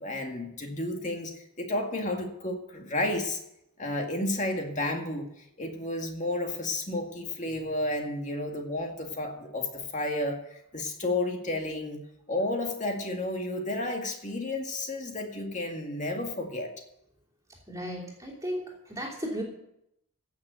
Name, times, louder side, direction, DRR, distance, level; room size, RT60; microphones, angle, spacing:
voice 1, 0.0-3.4 3.8-12.0 12.3-16.7, left 2 dB, 35° left, 3 dB, 2.0 m, -32 dB
voice 2, 17.7-19.4, equal, 15° right, -3 dB, 3.0 m, -35 dB
16.0 x 6.6 x 8.2 m, 0.81 s
head